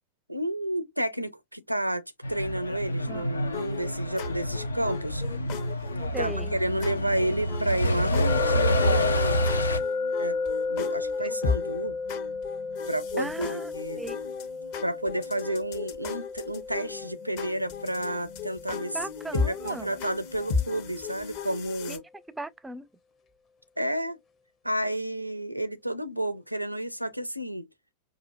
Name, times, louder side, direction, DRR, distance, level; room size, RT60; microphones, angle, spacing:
voice 1, 0.3-5.2 6.2-9.4 10.2-10.4 10.7-12.0 12.9-14.0 14.8-19.0 19.3-22.0 23.8-24.2 24.6-27.7, right 1 dB, 90° right, 0.5 m, -31 dB
Truck, 2.2-9.8, equal, 80° left, 0.6 m, -27 dB
sound 1, 3.5-22.0, left 5 dB, 50° left, 1.0 m, -36 dB
voice 2, 6.1-6.5 13.2-13.7 14.0-14.2 18.9-19.9 21.9-22.9, right 2 dB, 10° right, 0.5 m, -38 dB
sound 2, 8.3-21.2, left 4 dB, 25° left, 0.7 m, -34 dB
4.8 x 2.4 x 2.7 m
figure-of-eight pair, 90°, 0 cm